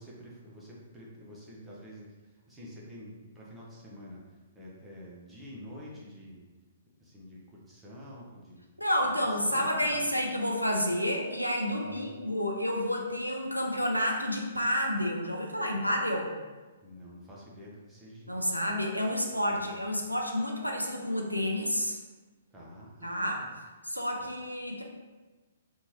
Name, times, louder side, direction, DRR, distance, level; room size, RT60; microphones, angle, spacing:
voice 1, 0.0-6.4 7.0-8.6 9.5-10.1 11.8-12.1 16.8-18.6 19.5-19.7 22.5-23.5 24.2-24.3, equal, 10° right, -6 dB, 0.6 m, -48 dB
voice 2, 8.8-16.3 18.3-22.0 23.0-23.4 23.8-24.8, equal, 90° left, 0 dB, 0.4 m, -30 dB
2.8 x 2.3 x 2.8 m, 1.2 s
figure-of-eight pair, 120°, 0 cm